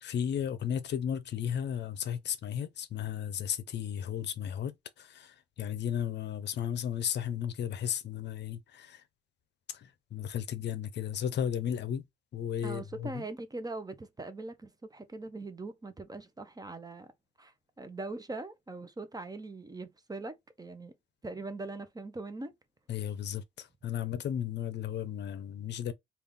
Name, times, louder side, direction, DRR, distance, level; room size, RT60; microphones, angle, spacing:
voice 1, 0.0-9.0 9.7-12.1 12.3-13.3 22.9-25.9, left 9 dB, 60° left, 0.6 m, -34 dB
voice 2, 12.6-17.1 17.4-20.9 21.2-22.5, right 2 dB, 20° right, 0.7 m, -41 dB
3.4 x 2.4 x 3.6 m
cardioid pair, 90°, 20 cm